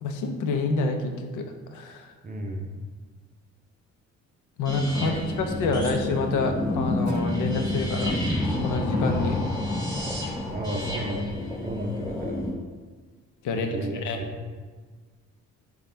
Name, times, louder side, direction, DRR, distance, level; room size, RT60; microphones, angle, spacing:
voice 1, 0.0-2.1 4.6-8.1 8.6-9.4 13.4-13.7 14.0-14.2, left 3 dB, 80° left, 5 dB, 0.6 m, -27 dB
voice 2, 2.2-2.7 5.0-5.5 10.5-11.3 11.6-12.4 13.5-14.4, right 1 dB, 30° right, 2 dB, 0.6 m, -33 dB
sound 1, 4.6-12.5, left 1 dB, 15° left, 1.5 m, -29 dB
Guitar, 7.0-10.2, right 5 dB, 75° right, 0.5 m, -44 dB
6.7 x 2.3 x 3.3 m, 1.4 s
cardioid pair, 90°, 30 cm